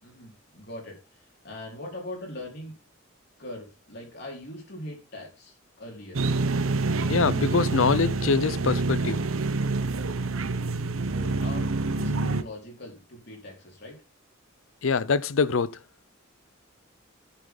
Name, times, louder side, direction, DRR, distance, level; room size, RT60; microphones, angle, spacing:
voice 1, 0.0-2.7 3.4-6.2 11.0-14.0, left 1 dB, 55° left, 4.5 m, -41 dB
sound 1, 6.1-12.4, right 3 dB, 90° right, 0.9 m, -27 dB
voice 2, 7.1-9.2 14.8-15.8, left 4 dB, 75° left, 0.6 m, -24 dB
10.0 x 8.5 x 4.0 m
head